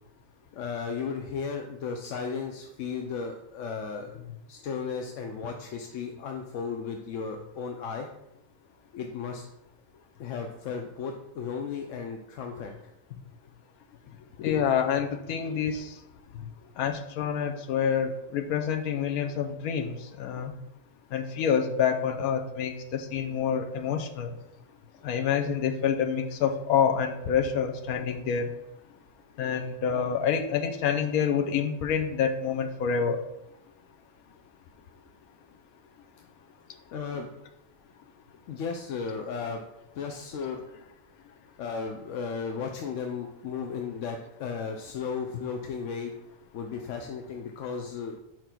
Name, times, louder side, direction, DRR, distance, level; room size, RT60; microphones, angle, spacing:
voice 1, 0.5-8.1 8.9-9.4 10.2-13.2 16.3-16.5 36.9-37.3 38.5-39.6 39.9-40.6 41.6-46.1 46.5-48.2, left 5 dB, 65° left, 3 dB, 0.9 m, -35 dB
voice 2, 14.4-15.9 16.8-20.5 21.1-24.3 25.0-28.5 29.4-33.2, left 7 dB, 85° left, 4 dB, 1.2 m, -27 dB
5.1 x 4.6 x 5.8 m, 0.84 s
omnidirectional pair, 1.5 m